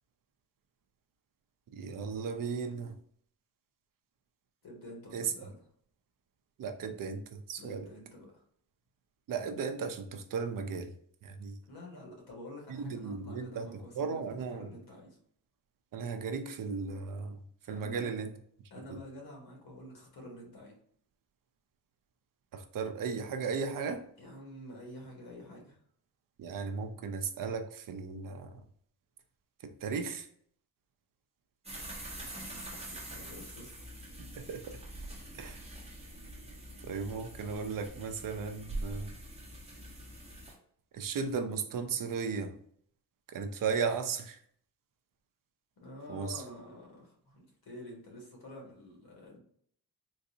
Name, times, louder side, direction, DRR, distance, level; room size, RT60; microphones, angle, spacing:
voice 1, 1.7-3.0 5.1-5.3 6.6-7.9 9.3-10.9 11.2-11.6 12.7-14.7 15.9-17.4 17.7-18.3 18.9-19.0 22.5-24.1 26.4-28.6 29.6-30.3 34.3-34.6 35.3-35.6 36.8-39.1 40.9-42.6 43.3-44.4 46.1-46.4, right 5 dB, 60° right, 6 dB, 0.5 m, -36 dB
voice 2, 4.6-5.6 7.6-8.4 11.7-15.2 17.7-18.1 18.7-20.7 24.2-25.8 32.1-33.9 45.8-49.4, left 1 dB, 75° left, 0 dB, 1.4 m, -49 dB
sound 1, 31.6-40.5, right 1 dB, 15° right, 1.1 m, -44 dB
3.8 x 2.6 x 2.6 m, 0.62 s
wide cardioid pair, 150°, 38 cm